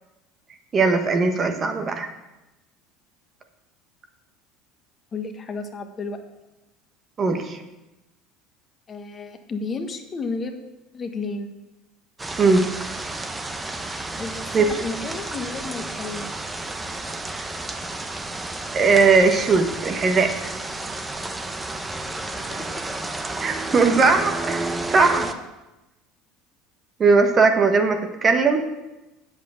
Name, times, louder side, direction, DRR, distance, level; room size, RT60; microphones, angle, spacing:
voice 1, 0.7-2.1 7.2-7.6 12.4-12.7 14.5-14.7 17.3-17.4 18.7-20.5 23.4-25.3 27.0-28.7, right 4 dB, 35° right, 6 dB, 1.3 m, -19 dB
voice 2, 5.1-6.2 8.9-10.6 10.9-11.5 14.2-16.3 22.5-22.8 23.6-24.1 25.2-25.4, left 3 dB, 35° left, 6 dB, 1.3 m, -33 dB
sound 1, 12.2-25.3, right 2 dB, 15° right, 0.9 m, -31 dB
8.2 x 7.5 x 6.5 m, 1.0 s
hypercardioid pair, 75°, 0 cm